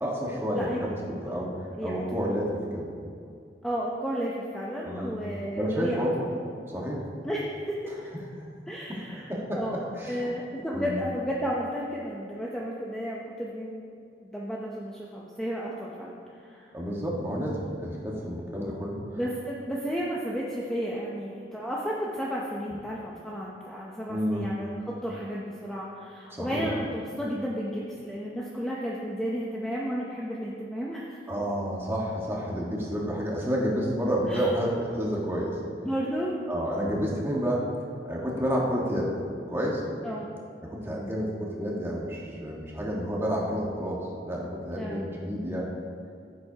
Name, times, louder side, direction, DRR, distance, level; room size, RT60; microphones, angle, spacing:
voice 1, 0.0-2.9 4.8-5.2 5.5-6.2 6.7-7.1 8.4-8.5 8.9-9.6 10.0-10.4 10.7-11.0 16.7-19.2 24.1-24.5 26.3-26.7 31.3-35.6 36.5-37.7 38.0-39.1 39.5-39.8 40.6-45.7, equal, 15° right, -3 dB, 1.4 m, -30 dB
voice 2, 1.8-2.2 3.6-6.3 7.2-7.8 8.7-13.9 14.2-16.7 19.2-24.7 25.0-31.2 34.3-34.5 35.8-36.3 40.0-40.3 44.7-45.0, equal, 5° left, -5 dB, 0.7 m, -33 dB
15.0 x 7.6 x 2.9 m, 2.4 s
head